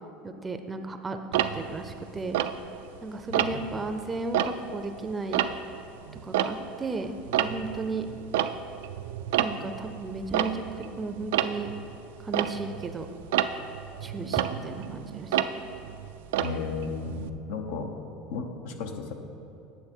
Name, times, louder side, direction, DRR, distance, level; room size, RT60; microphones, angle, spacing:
voice 1, 0.2-2.4 3.0-5.4 6.2-8.1 9.4-10.5 10.8-11.7 12.2-13.1 14.0-15.5, right 3 dB, 20° right, 7 dB, 0.5 m, -34 dB
Tick-tock, 1.3-3.0 3.3-3.8 4.2-6.9 7.2-17.3, right 10 dB, 80° right, 0.3 m, -30 dB
voice 2, 3.3-3.7 16.4-17.9 18.3-19.1, left 4 dB, 75° left, 5 dB, 0.8 m, -34 dB
8.7 x 6.6 x 4.4 m, 2.8 s
supercardioid pair, 105°, 0 cm